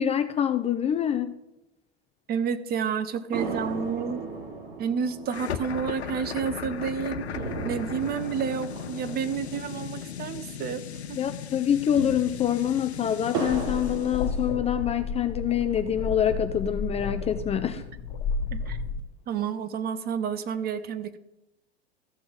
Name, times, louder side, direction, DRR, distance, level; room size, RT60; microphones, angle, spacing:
voice 1, 0.0-1.3 11.2-17.8, left 9 dB, 20° left, 9 dB, 0.5 m, -26 dB
voice 2, 2.3-4.2 4.8-10.8 11.1-11.2 17.7-17.8 18.5-18.8 19.3-21.2, right 7 dB, 30° right, 14 dB, 0.8 m, -30 dB
sound 1, 3.3-10.9 11.2-11.3 11.7-15.1 15.6-16.6, right 4 dB, 50° right, 2.7 m, -38 dB
sound 2, 5.3-14.4, left 8 dB, 90° left, 0.8 m, -37 dB
sound 3, 13.4-19.0, left 4 dB, 40° left, 1.5 m, -32 dB
14.0 x 5.9 x 5.0 m, 0.92 s
hypercardioid pair, 100°, 32 cm